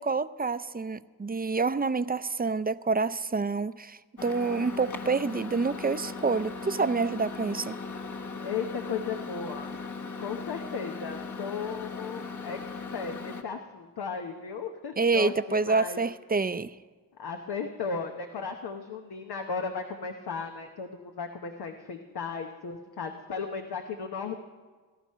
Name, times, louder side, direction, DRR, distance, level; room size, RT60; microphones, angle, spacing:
voice 1, 0.0-7.8 15.0-16.7, right 4 dB, 25° right, 14 dB, 0.6 m, -28 dB
Microwave oven, 4.2-13.4, left 4 dB, 50° left, 1.5 m, -38 dB
voice 2, 8.4-9.7 10.2-16.0 17.2-24.4, left 5 dB, 80° left, 4 dB, 1.0 m, -36 dB
18.0 x 12.0 x 5.6 m, 1.4 s
cardioid pair, 50°, 38 cm